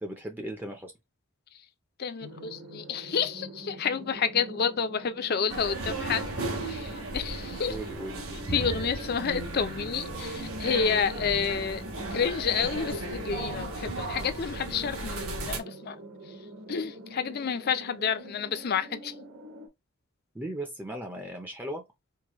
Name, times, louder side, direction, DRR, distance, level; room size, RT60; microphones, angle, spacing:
voice 1, 0.0-0.9 7.7-8.2 20.3-21.8, right 1 dB, 10° right, 0.5 m, -37 dB
voice 2, 2.0-6.3 6.6-7.8 8.5-11.8 12.1-16.4 16.7-19.1, left 6 dB, 45° left, 0.4 m, -30 dB
sound 1, 2.2-19.7, equal, 85° right, 1.9 m, -45 dB
sound 2, 5.5-15.6, right 2 dB, 70° right, 1.2 m, -35 dB
4.6 x 2.2 x 3.0 m
head